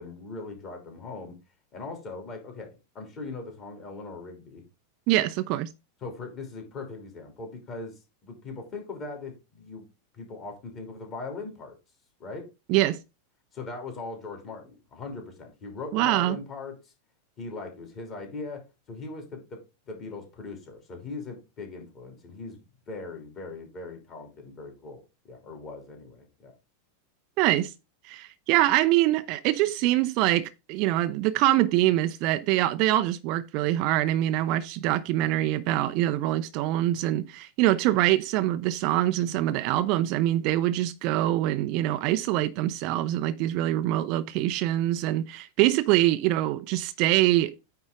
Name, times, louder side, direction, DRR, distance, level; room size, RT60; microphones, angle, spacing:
voice 1, 0.0-1.3 1.7-4.6 6.0-9.8 10.1-11.7 12.2-12.5 13.5-16.9 17.4-19.6 19.9-26.5, left 3 dB, 30° left, 3.0 m, -40 dB
voice 2, 5.1-5.7 12.7-13.0 15.9-16.4 27.4-27.7 28.0-47.5, right 15 dB, 45° right, 0.5 m, -24 dB
9.1 x 3.5 x 4.9 m
figure-of-eight pair, 90°, 0 cm